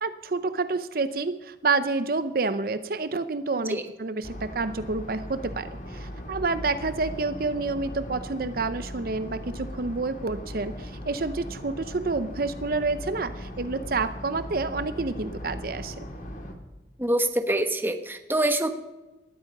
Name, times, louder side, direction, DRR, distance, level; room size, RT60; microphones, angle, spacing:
voice 1, 0.0-16.0, right 3 dB, 55° right, 12 dB, 0.7 m, -29 dB
sound 1, 4.2-16.5, equal, 45° left, 2.2 m, -38 dB
voice 2, 17.0-18.7, right 1 dB, 10° right, 6 dB, 1.1 m, -25 dB
19.0 x 13.0 x 5.4 m, 1.1 s
head